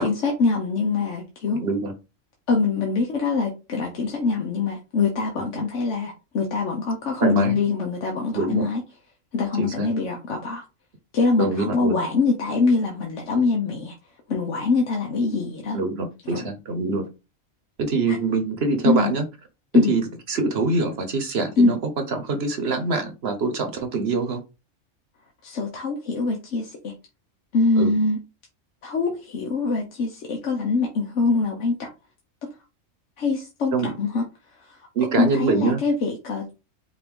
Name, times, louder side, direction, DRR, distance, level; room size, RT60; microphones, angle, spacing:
voice 1, 0.0-1.6 2.5-8.8 9.3-10.6 11.1-13.9 14.3-15.8 16.3-16.4 18.1-18.2 18.8-19.1 19.7-19.9 21.6-21.7 25.4-26.9 27.5-28.2 28.8-31.9 33.2-34.3 34.6-34.8 35.2-36.4, left 4 dB, 70° left, 1.2 m, -23 dB
voice 2, 1.5-1.9 7.2-7.6 8.3-8.7 9.6-9.9 11.4-12.0 15.7-17.0 17.8-19.2 19.9-21.8 22.1-24.4 27.8-27.9 33.7-33.9 34.9-35.8, right 3 dB, 55° right, 1.1 m, -24 dB
5.3 x 2.6 x 3.6 m
omnidirectional pair, 1.3 m